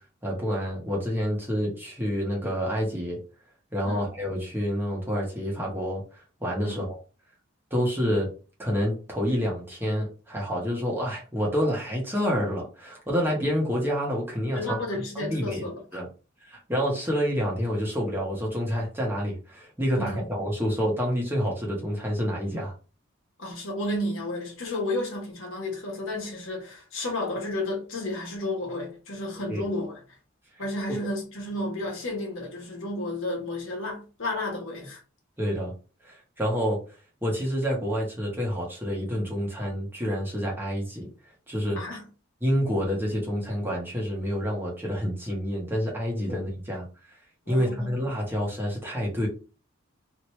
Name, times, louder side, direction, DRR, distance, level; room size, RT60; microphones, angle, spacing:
voice 1, 0.2-3.2 3.7-6.0 6.4-7.0 7.7-8.3 8.6-14.8 15.1-15.7 15.9-16.1 16.5-22.7 29.5-29.6 35.4-35.7 36.0-36.8 37.2-41.1 41.5-41.8 42.4-46.9 47.5-49.3, equal, 10° right, 0.9 m, -28 dB
voice 2, 14.5-16.0 20.0-20.3 23.4-30.0 30.6-35.0 41.7-42.0 46.3-46.4 47.5-47.9, left 1 dB, 70° left, 1.2 m, -32 dB
3.0 x 2.5 x 3.1 m
head